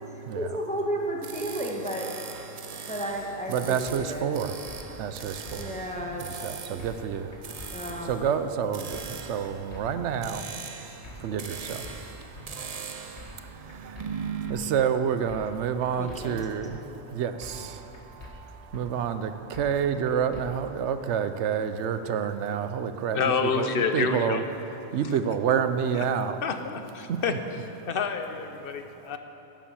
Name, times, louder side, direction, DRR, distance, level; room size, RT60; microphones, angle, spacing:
voice 1, 0.1-2.1 2.9-4.3 5.5-6.2 7.7-8.2 16.0-16.5, equal, 5° left, -1 dB, 1.2 m, -33 dB
sound 1, 1.2-14.5, right 6 dB, 45° right, 0.5 m, -41 dB
voice 2, 3.5-5.7 6.2-11.8 12.1-23.7 23.9-24.4 24.9-26.4 27.1-27.2, right 8 dB, 85° right, 10 dB, 0.9 m, -29 dB
sound 2, 3.9-4.0 4.7-4.9 5.2-5.6 6.0-6.1 6.8-7.1 7.3-7.7 8.1-8.2 8.9-9.2 9.4-9.8 10.2-10.4 11.0-11.3 11.6-11.9 12.3-12.5 13.2-13.4 13.7-14.1 14.5-14.6 15.3-15.6 15.8-16.2 16.6-16.7 17.4-17.7 17.9-18.3 18.7-18.8 19.5-19.8 20.1-20.4, left 2 dB, 75° left, 1.8 m, -45 dB
voice 3, 23.1-24.4 25.0-25.2 25.9-26.1 26.4-27.3 27.7-29.2, left 5 dB, 60° left, 7 dB, 0.9 m, -28 dB
11.0 x 7.4 x 7.0 m, 2.9 s
omnidirectional pair, 1.2 m